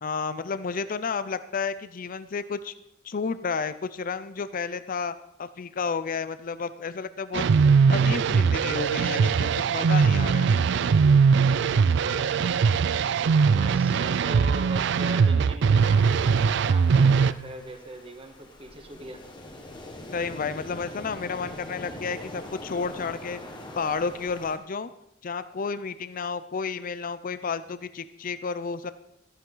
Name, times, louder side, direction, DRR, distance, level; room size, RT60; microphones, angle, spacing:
voice 1, 0.0-2.7 3.0-5.1 5.4-7.4 7.9-10.5 20.1-23.4 23.8-24.9 25.2-28.9, left 5 dB, 45° left, 13 dB, 0.5 m, -31 dB
sound 1, 7.3-17.3, right 5 dB, 65° right, 0.4 m, -21 dB
voice 2, 11.9-12.6 13.5-16.2 16.6-19.2, right 2 dB, 30° right, 4 dB, 1.6 m, -40 dB
sound 2, 15.8-24.6, left 1 dB, 25° left, 1.4 m, -43 dB
13.0 x 11.0 x 3.9 m, 0.81 s
head